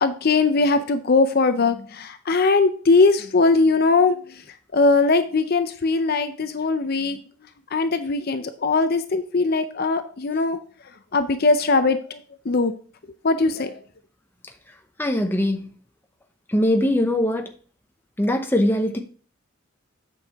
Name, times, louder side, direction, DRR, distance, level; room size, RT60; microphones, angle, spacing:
voice 1, 0.0-4.2 4.7-7.2 7.7-10.6 11.1-12.2 12.5-12.7 13.2-13.7, left 3 dB, 45° left, 9 dB, 0.5 m, -20 dB
voice 2, 15.0-15.7 16.5-17.5 18.2-19.0, left 1 dB, 10° left, 4 dB, 0.8 m, -21 dB
8.4 x 6.3 x 3.5 m, 0.41 s
head